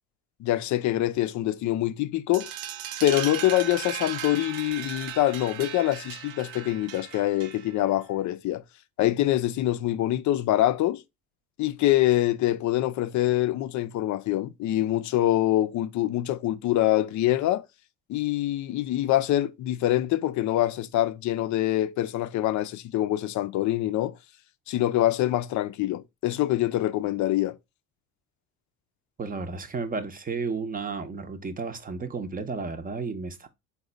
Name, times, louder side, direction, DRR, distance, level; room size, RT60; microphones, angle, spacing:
voice 1, 0.4-2.5 3.0-8.6 9.0-11.0 11.6-17.6 18.1-24.1 24.7-27.6, left 14 dB, 50° left, 0.5 m, -25 dB
sound 1, 2.3-7.9, right 9 dB, 60° right, 0.6 m, -37 dB
voice 2, 29.2-33.5, right 4 dB, 20° right, 0.7 m, -33 dB
3.9 x 2.3 x 3.8 m
hypercardioid pair, 70°, 39 cm